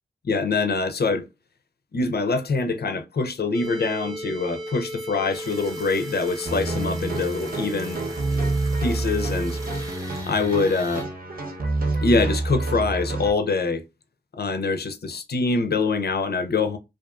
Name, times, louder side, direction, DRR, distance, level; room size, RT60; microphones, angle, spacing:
voice 1, 0.3-1.3 1.9-8.0 8.8-9.6 10.3-11.1 12.0-13.8 14.4-16.8, left 3 dB, 50° left, 0.5 m, -24 dB
sound 1, 3.5-10.0, right 1 dB, 75° right, 0.6 m, -36 dB
sound 2, 5.3-11.0, right 1 dB, 15° right, 0.8 m, -43 dB
sound 3, 6.5-13.3, right 2 dB, 45° right, 0.8 m, -28 dB
2.4 x 2.4 x 2.3 m
cardioid pair, 40°, 21 cm